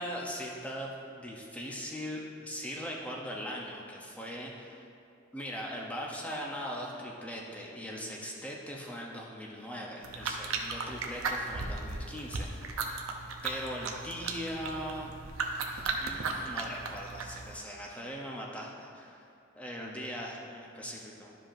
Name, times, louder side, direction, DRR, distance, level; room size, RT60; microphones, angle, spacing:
voice 1, 0.0-4.8 5.3-13.0 13.4-15.1 16.0-21.4, equal, 5° left, -2 dB, 0.7 m, -40 dB
sound 1, 10.0-17.6, right 3 dB, 85° right, 0.6 m, -36 dB
11.5 x 5.0 x 2.6 m, 2.6 s
head